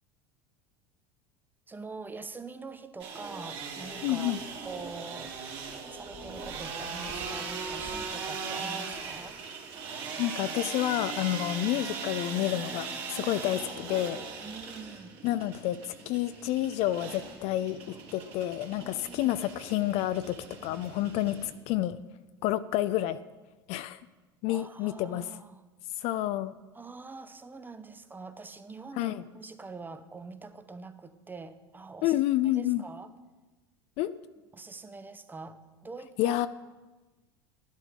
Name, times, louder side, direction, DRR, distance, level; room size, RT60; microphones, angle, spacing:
voice 1, 1.7-4.4 4.6-5.4 5.9-9.4 14.4-15.1 18.8-19.4 24.5-25.6 26.0-26.2 26.7-32.2 32.4-33.1 34.5-36.4, right 4 dB, 15° right, 10 dB, 0.8 m, -44 dB
sound 1, 3.0-21.5, right 5 dB, 50° right, 2.8 m, -39 dB
voice 2, 4.0-4.4 10.2-14.2 15.2-20.4 20.6-22.0 22.4-23.2 23.7-24.0 24.4-25.3 26.0-26.5 29.0-29.2 32.0-32.8 34.0-34.1 36.2-36.5, left 14 dB, 50° left, 14 dB, 0.4 m, -29 dB
11.5 x 11.0 x 3.7 m, 1.2 s
figure-of-eight pair, 75°, 14 cm